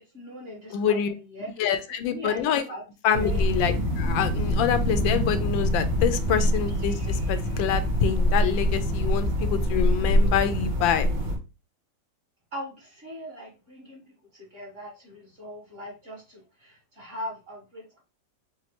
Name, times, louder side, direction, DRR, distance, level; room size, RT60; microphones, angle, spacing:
voice 1, 0.0-1.7 2.0-2.8 3.2-3.4 12.5-14.0 14.3-18.0, equal, 35° right, -2 dB, 1.5 m, -40 dB
voice 2, 0.7-1.1 1.6-2.6 3.0-11.1, left 8 dB, 80° left, 10 dB, 1.3 m, -26 dB
sound 1, 3.1-11.4, equal, 65° right, 1.7 m, -25 dB
5.1 x 2.2 x 2.9 m, 0.29 s
omnidirectional pair, 2.1 m